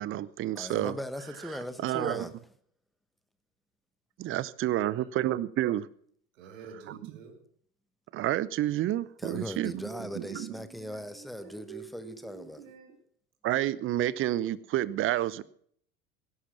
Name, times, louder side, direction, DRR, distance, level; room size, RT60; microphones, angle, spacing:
voice 1, 0.0-1.0 1.8-2.3 4.2-5.9 6.9-7.0 8.1-9.8 10.1-10.6 13.4-15.4, right 13 dB, 30° right, 0.7 m, -29 dB
voice 2, 0.5-2.3 9.2-12.6, left 1 dB, ahead, 1.2 m, -39 dB
voice 3, 4.7-5.1 6.3-7.4 9.6-13.0, right 7 dB, 65° right, 2.8 m, -48 dB
17.5 x 11.5 x 6.0 m
figure-of-eight pair, 75°, 43 cm